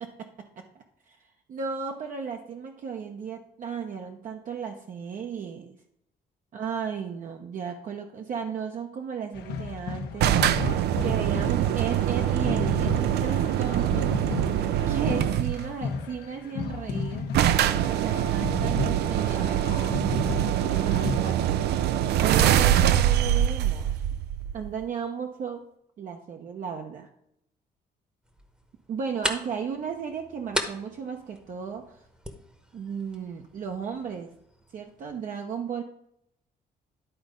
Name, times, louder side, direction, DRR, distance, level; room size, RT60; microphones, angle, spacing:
voice 1, 0.0-1.2 1.5-5.8 6.5-14.2 14.9-17.3 17.9-21.5 22.2-23.9 24.5-25.6 26.0-27.1 28.9-32.0 32.7-34.3 34.7-35.8, right 7 dB, 55° right, 3 dB, 0.8 m, -35 dB
sound 1, 9.3-21.2, left 5 dB, 90° left, 1.0 m, -34 dB
sound 2, 10.2-15.7 16.7-16.8 17.0-17.1 17.3-24.8, right 11 dB, 90° right, 0.4 m, -24 dB
sound 3, 28.2-35.2, equal, 5° right, 0.9 m, -38 dB
11.0 x 4.1 x 5.2 m, 0.76 s
cardioid pair, 135°, 17 cm